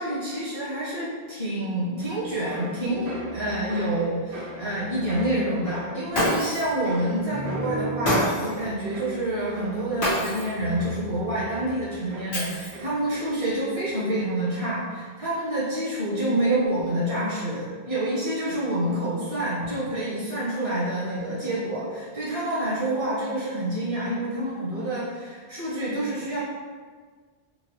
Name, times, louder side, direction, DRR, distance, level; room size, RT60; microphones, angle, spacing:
voice 1, 0.0-26.4, right 1 dB, 80° right, -9 dB, 1.5 m, -27 dB
sound 1, 2.0-13.6 13.9-14.4, right 2 dB, 60° right, 0.8 m, -39 dB
Shatter, 6.1-6.8 8.0-8.6 10.0-10.6 12.3-13.0, equal, 85° left, 1.6 m, -26 dB
4.5 x 2.5 x 3.0 m, 1.5 s
omnidirectional pair, 1.0 m